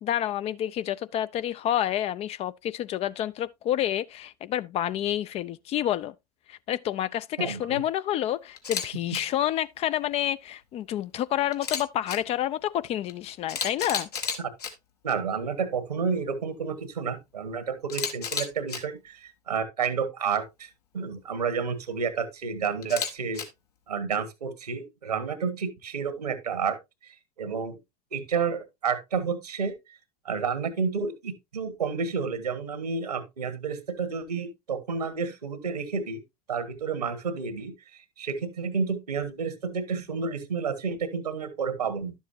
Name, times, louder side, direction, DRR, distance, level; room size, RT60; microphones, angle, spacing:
voice 1, 0.0-6.1 6.5-14.1, left 11 dB, 30° left, 0.4 m, -29 dB
voice 2, 7.4-7.8 15.0-20.7 20.9-23.4 23.9-26.8 27.0-27.8 28.1-29.7 30.2-36.2 36.5-37.7 38.2-42.1, right 5 dB, 80° right, 1.5 m, -30 dB
Camera, 8.6-8.8 9.1-9.2 11.5-12.2 13.1-13.2 13.5-14.7 17.9-18.8 22.8-23.4, left 6 dB, 75° left, 1.6 m, -31 dB
11.5 x 7.2 x 2.7 m
figure-of-eight pair, 85°, 20 cm